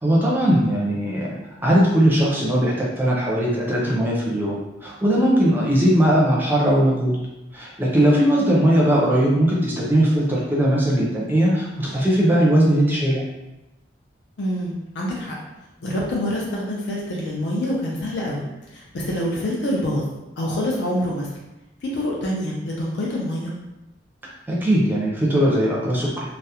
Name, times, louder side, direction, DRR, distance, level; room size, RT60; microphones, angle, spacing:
voice 1, 0.0-1.3 1.6-7.2 7.5-13.2 24.5-26.2, equal, 10° right, -5 dB, 0.5 m, -19 dB
voice 2, 14.4-15.3 15.8-18.4 18.7-20.0 20.4-21.3 21.8-23.5, left 1 dB, 70° left, -4 dB, 0.5 m, -26 dB
2.4 x 2.0 x 2.8 m, 0.97 s
head